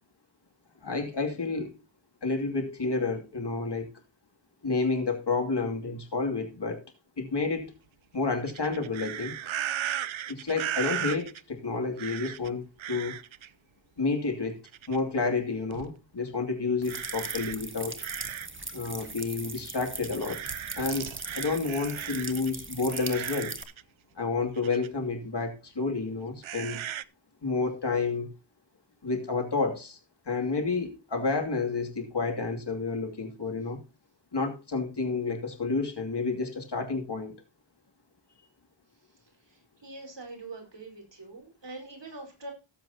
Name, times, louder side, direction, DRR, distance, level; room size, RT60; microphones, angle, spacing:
voice 1, 0.8-1.7 2.2-3.9 4.6-6.8 7.2-7.7 8.1-9.3 10.3-13.2 14.0-14.6 14.9-18.0 18.7-20.4 20.8-23.5 24.2-26.8 27.4-28.3 29.0-30.0 30.3-33.8 34.3-37.3, left 4 dB, 60° left, 2.7 m, -30 dB
sound 1, 8.5-11.4 12.0-12.5 12.8-13.5 14.7-15.2 15.7-15.9 16.9-18.6 19.0-19.1 20.0-22.5 22.9-23.8 24.6-24.9 26.4-27.0, right 11 dB, 80° right, 0.6 m, -36 dB
sound 2, 16.8-23.6, right 2 dB, 25° right, 1.7 m, -39 dB
voice 2, 39.1-42.5, right 2 dB, 65° right, 4.8 m, -44 dB
17.5 x 7.8 x 2.8 m
wide cardioid pair, 65°, 46 cm